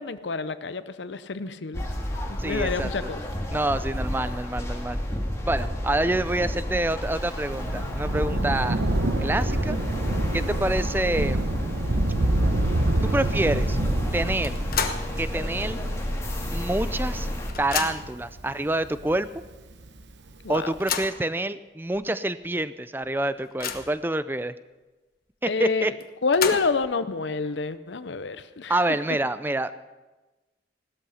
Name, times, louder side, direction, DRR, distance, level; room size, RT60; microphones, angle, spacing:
voice 1, 0.0-1.8 2.4-3.2 20.4-20.7 25.5-25.9 26.2-28.7, left 4 dB, 80° left, 12 dB, 0.7 m, -27 dB
sound 1, 1.7-17.5, equal, 15° left, 1.9 m, -30 dB
voice 2, 2.4-3.1 3.5-5.0 5.5-8.8 9.2-9.8 10.3-11.4 13.0-13.8 14.1-14.6 15.2-15.8 16.5-17.3 17.6-19.3 20.5-24.5 25.4-25.9 28.7-29.8, right 1 dB, 10° right, 14 dB, 0.4 m, -27 dB
Thunder, 7.0-19.9 20.8-20.9, right 2 dB, 75° right, 1.0 m, -28 dB
sound 2, 14.4-15.2 15.6-15.7 16.7-16.8 17.1-18.2 19.0-19.1 19.5-19.6 20.5-21.2 21.9-22.0 22.4-22.5 23.0-24.1 26.0-26.9, left 7 dB, 50° left, 1.1 m, -31 dB
17.0 x 13.0 x 5.7 m, 1.2 s
head